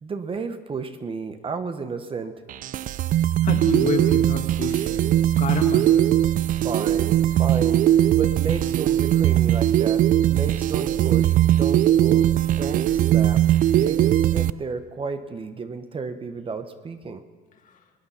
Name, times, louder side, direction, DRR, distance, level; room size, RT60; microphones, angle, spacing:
voice 1, 0.0-2.4 6.6-10.0 10.3-17.2, right 4 dB, 30° right, 9 dB, 1.0 m, -32 dB
sound 1, 2.5-14.5, right 12 dB, 55° right, 0.4 m, -20 dB
voice 2, 3.4-6.0 17.6-17.8, left 6 dB, 50° left, 4 dB, 1.9 m, -30 dB
21.0 x 9.6 x 5.7 m, 1.4 s
cardioid pair, 110°, 17 cm